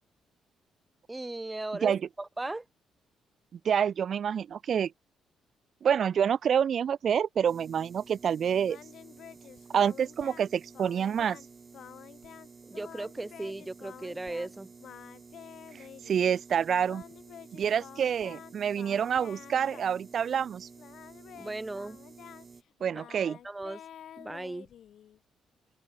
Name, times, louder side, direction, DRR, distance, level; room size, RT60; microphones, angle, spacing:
voice 1, 1.1-1.9 2.2-2.6 12.7-14.7 21.4-22.0 23.3-23.8 24.2-24.7, right 2 dB, 15° right, 1.6 m, -37 dB
voice 2, 3.6-4.9 5.8-8.8 9.7-11.4 15.7-17.0 17.5-20.7 22.8-23.4, right 8 dB, 55° right, 0.4 m, -27 dB
sound 1, 7.5-22.6, right 4 dB, 35° right, 2.2 m, -52 dB
Singing, 8.7-10.5 10.7-11.5 11.7-12.5 12.7-14.5 14.8-16.3 16.9-20.5 20.8-25.2, left 10 dB, 70° left, 1.2 m, -50 dB
open air
cardioid pair, 90°, 0 cm